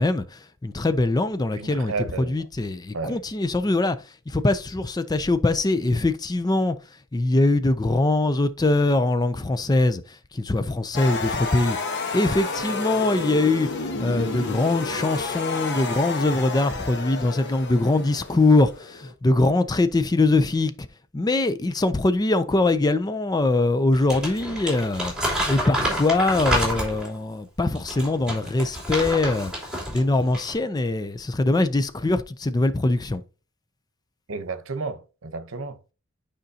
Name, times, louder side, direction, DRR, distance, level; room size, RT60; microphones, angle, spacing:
voice 1, 0.0-1.9 2.2-4.0 4.3-6.8 7.1-10.0 10.3-11.8 12.1-13.7 14.0-20.7 21.1-25.1 25.4-29.5 29.9-33.2, left 2 dB, 20° left, 0.4 m, -22 dB
voice 2, 1.5-2.4 2.9-3.2 34.3-35.9, right 4 dB, 70° right, 0.9 m, -32 dB
sound 1, 10.9-19.1, left 3 dB, 60° left, 1.1 m, -31 dB
Crumpling crinkling, 23.9-27.2 27.8-30.0 30.3-30.5, equal, 5° right, 3.2 m, -28 dB
9.2 x 5.1 x 2.8 m
head